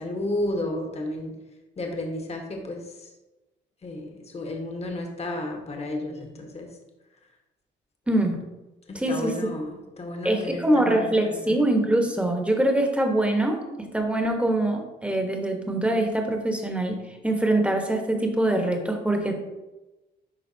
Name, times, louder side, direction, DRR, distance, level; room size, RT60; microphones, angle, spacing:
voice 1, 0.0-1.3 1.8-3.1 3.8-6.7 8.9-11.6, left 1 dB, 30° left, 2 dB, 1.3 m, -32 dB
voice 2, 8.1-8.4 8.9-9.4 10.2-17.0 17.2-19.3, right 1 dB, 5° right, 3 dB, 1.2 m, -24 dB
10.5 x 4.0 x 2.8 m, 1.1 s
cardioid pair, 90°, 20 cm